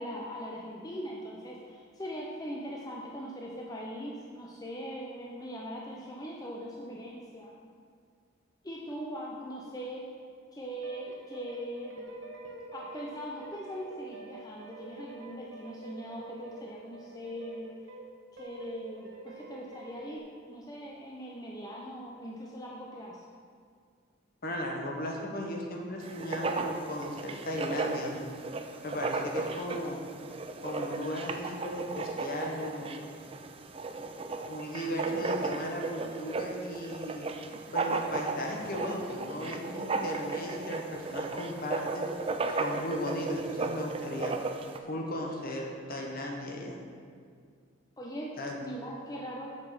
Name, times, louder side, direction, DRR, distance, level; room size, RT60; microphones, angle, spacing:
voice 1, 0.0-7.5 8.6-10.0 10.5-12.1 12.7-17.7 18.3-20.2 20.5-23.2 48.0-48.3 48.6-49.6, equal, 20° left, -2 dB, 0.6 m, -40 dB
sound 1, 10.8-18.1 18.4-20.2, right 3 dB, 70° right, 1.2 m, -47 dB
voice 2, 24.4-28.3 28.8-30.1 30.6-33.0 34.4-37.3 37.7-42.1 42.5-44.4 44.9-46.8 48.4-48.6, equal, 45° left, 0 dB, 1.1 m, -36 dB
Writing, 26.0-44.8, right 3 dB, 30° right, 0.4 m, -35 dB
7.5 x 5.9 x 5.9 m, 2.1 s
head